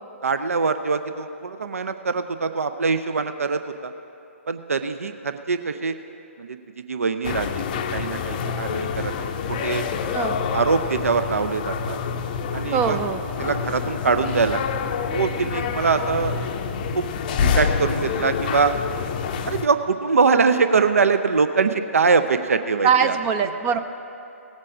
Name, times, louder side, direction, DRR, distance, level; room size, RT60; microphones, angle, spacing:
voice 1, 0.2-3.9 4.5-5.9 6.4-6.6 6.9-9.8 10.5-12.0 12.5-13.0 13.4-14.6 15.1-16.3 16.9-17.1 17.4-18.7 19.4-23.2, right 5 dB, 70° right, 10 dB, 0.5 m, -23 dB
sound 1, 7.2-19.7, left 6 dB, 35° left, 0.5 m, -27 dB
voice 2, 12.7-13.2 22.8-23.8, right 7 dB, 20° right, 10 dB, 0.4 m, -21 dB
18.0 x 7.5 x 5.0 m, 2.8 s
figure-of-eight pair, 130°, 8 cm